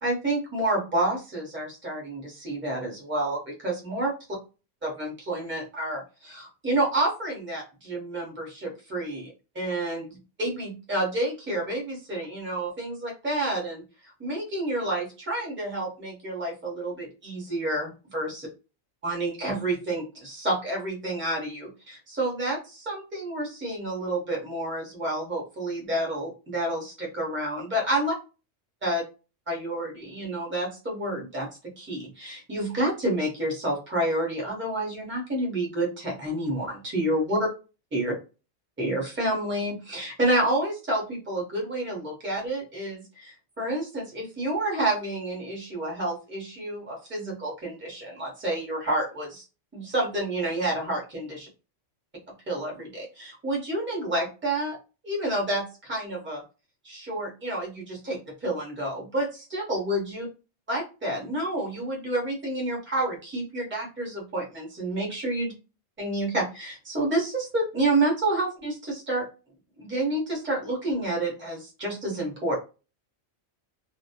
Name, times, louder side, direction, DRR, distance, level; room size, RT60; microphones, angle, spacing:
voice 1, 0.0-4.1 4.8-18.5 19.0-28.1 28.8-29.0 29.5-31.5 31.8-37.5 37.9-38.1 38.8-49.4 49.7-51.5 52.5-54.8 55.0-56.4 56.8-60.2 60.7-65.5 66.0-69.3 69.8-72.5, right 1 dB, 10° right, -1 dB, 0.7 m, -29 dB
2.2 x 2.0 x 2.8 m, 0.32 s
omnidirectional pair, 1.3 m